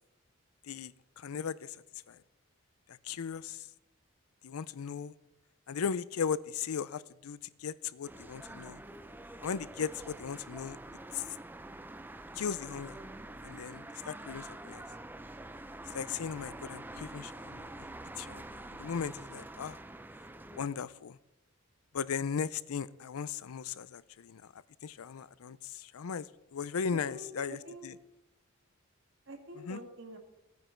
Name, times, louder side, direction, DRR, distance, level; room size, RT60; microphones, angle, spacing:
voice 1, 0.6-1.8 2.1-2.2 2.9-3.7 4.4-5.2 5.7-8.8 9.4-10.8 11.1-11.2 12.4-13.0 13.4-14.8 15.8-17.9 18.2-19.8 20.5-21.2 21.9-28.0 29.6-29.8, left 6 dB, 85° left, 18 dB, 0.5 m, -37 dB
sound 1, 8.0-20.7, right 1 dB, 10° right, 0.4 m, -46 dB
voice 2, 27.1-27.9 29.3-30.2, equal, 55° right, 4 dB, 1.9 m, -47 dB
15.5 x 9.4 x 4.5 m, 0.98 s
head